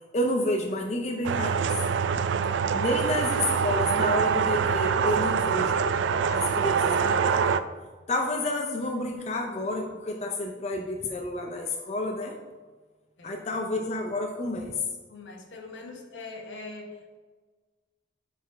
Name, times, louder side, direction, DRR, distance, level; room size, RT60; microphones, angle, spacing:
voice 1, 0.1-1.8 2.7-5.8 6.3-7.6 8.1-12.4 13.2-14.8, left 1 dB, 35° left, 2 dB, 0.5 m, -30 dB
sound 1, 1.2-7.6, right 6 dB, 75° right, 0.3 m, -25 dB
voice 2, 15.1-17.2, left 3 dB, 80° left, 2 dB, 1.0 m, -42 dB
6.5 x 4.1 x 4.5 m, 1.4 s
head